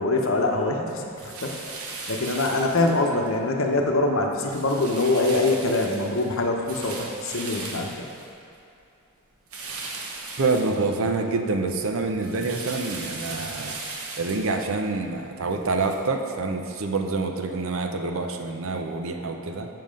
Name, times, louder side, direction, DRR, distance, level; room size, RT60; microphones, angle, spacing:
voice 1, 0.0-1.6 2.1-8.1, left 2 dB, 65° left, 2 dB, 0.8 m, -24 dB
sound 1, 1.2-3.4 3.8-4.1 4.5-8.8 9.5-11.3 11.7-16.0, right 3 dB, 90° right, 1.0 m, -38 dB
voice 2, 10.4-13.7 14.2-19.7, right 3 dB, 65° right, 4 dB, 0.6 m, -27 dB
7.5 x 5.6 x 5.1 m, 2.5 s
head